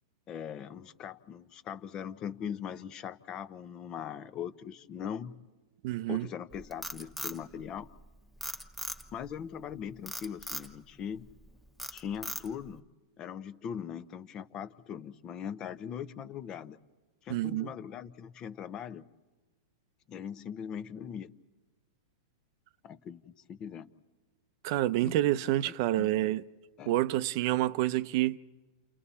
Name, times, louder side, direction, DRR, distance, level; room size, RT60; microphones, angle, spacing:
voice 1, 0.3-5.3 6.1-7.9 9.1-11.3 11.9-12.8 13.2-16.8 17.2-19.1 20.1-21.4 22.8-23.9 25.0-25.2 25.6-26.4 26.8-27.0, left 8 dB, 35° left, 0.9 m, -40 dB
voice 2, 5.8-6.3 17.3-17.7 24.6-26.4 26.9-28.4, right 15 dB, 55° right, 0.6 m, -28 dB
Frog, 6.5-8.0 8.4-9.3 10.1-10.7 11.2-11.5 11.8-12.7, equal, ahead, 1.2 m, -39 dB
29.0 x 29.0 x 4.2 m
hypercardioid pair, 120°, 2 cm